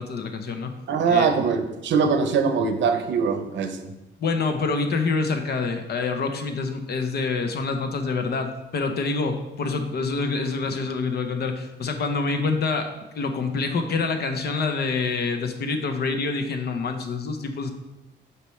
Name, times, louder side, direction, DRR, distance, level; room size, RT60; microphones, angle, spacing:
voice 1, 0.0-0.7 1.1-1.3 4.2-12.9 13.1-17.7, left 4 dB, 55° left, 6 dB, 0.8 m, -26 dB
voice 2, 0.9-3.9, right 5 dB, 70° right, 7 dB, 0.7 m, -22 dB
6.7 x 4.5 x 3.1 m, 0.99 s
cardioid pair, 90°, 20 cm